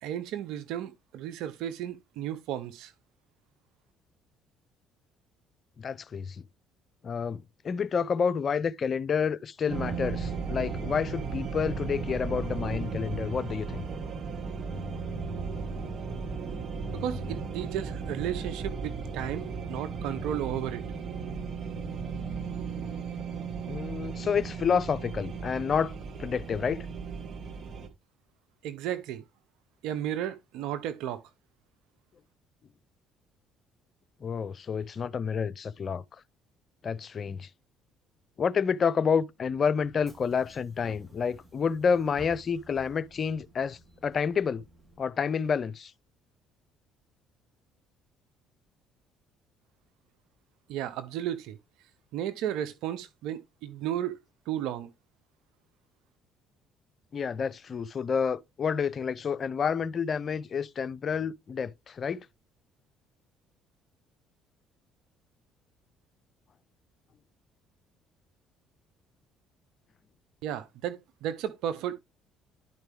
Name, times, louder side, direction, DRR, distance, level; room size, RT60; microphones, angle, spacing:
voice 1, 0.0-2.9 16.9-20.8 28.6-29.2 29.8-31.2 50.7-51.6 52.1-54.2 54.5-54.9 70.4-71.9, right 10 dB, 75° right, 0.7 m, -34 dB
voice 2, 5.8-6.4 7.0-13.8 23.7-25.9 26.2-26.9 34.2-36.0 36.8-37.5 38.4-44.6 45.0-45.9 57.1-62.3, left 6 dB, 45° left, 0.5 m, -29 dB
sound 1, 9.7-27.9, right 5 dB, 50° right, 1.5 m, -35 dB
Bus / Engine, 39.8-45.0, equal, 15° right, 2.2 m, -54 dB
11.0 x 4.6 x 3.4 m
hypercardioid pair, 65°, 0 cm